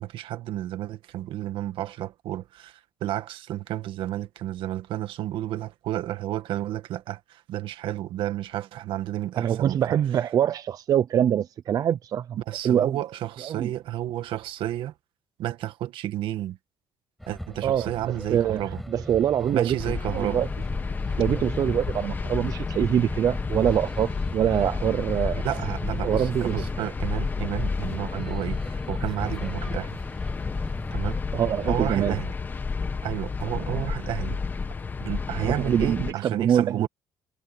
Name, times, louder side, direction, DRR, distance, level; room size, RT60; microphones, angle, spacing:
voice 1, 0.0-10.0 12.4-14.9 15.4-16.6 17.3-18.8 19.5-20.5 25.4-30.0 30.9-31.2 31.7-32.3 33.0-34.4 35.0-36.9, right 13 dB, 65° right, 1.7 m, -31 dB
voice 2, 9.4-13.0 13.5-13.7 17.6-17.9 18.3-18.6 18.9-19.8 20.1-20.5 21.2-25.4 26.0-26.6 31.3-32.1 35.4-36.9, right 10 dB, 40° right, 0.5 m, -24 dB
sound 1, 17.2-31.2, equal, ahead, 7.6 m, -38 dB
sound 2, 19.8-36.1, left 4 dB, 20° left, 1.2 m, -31 dB
cardioid pair, 160°, 9 cm